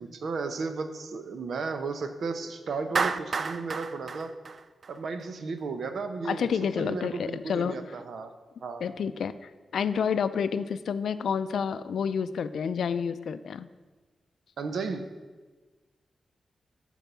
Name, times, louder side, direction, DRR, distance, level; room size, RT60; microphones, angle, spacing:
voice 1, 0.0-4.3 4.9-6.5 6.8-8.3 8.6-8.9 14.6-15.1, right 4 dB, 65° right, 8 dB, 0.8 m, -34 dB
Clapping, 3.0-5.3, right 4 dB, 45° right, 0.3 m, -31 dB
voice 2, 6.2-7.8 8.8-13.7, left 7 dB, 80° left, 13 dB, 0.4 m, -29 dB
11.5 x 4.6 x 6.9 m, 1.3 s
wide cardioid pair, 160°, 0 cm